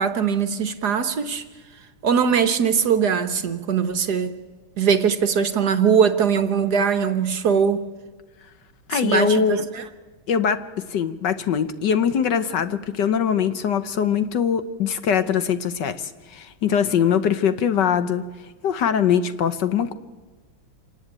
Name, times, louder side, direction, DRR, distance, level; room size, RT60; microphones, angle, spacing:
voice 1, 0.0-1.4 2.0-4.3 4.8-7.9 8.9-9.8, right 7 dB, 55° right, 9 dB, 1.4 m, -21 dB
voice 2, 8.9-9.6 10.3-18.2 18.6-19.9, left 7 dB, 60° left, 12 dB, 1.4 m, -22 dB
26.0 x 18.5 x 8.9 m, 1.3 s
omnidirectional pair, 2.3 m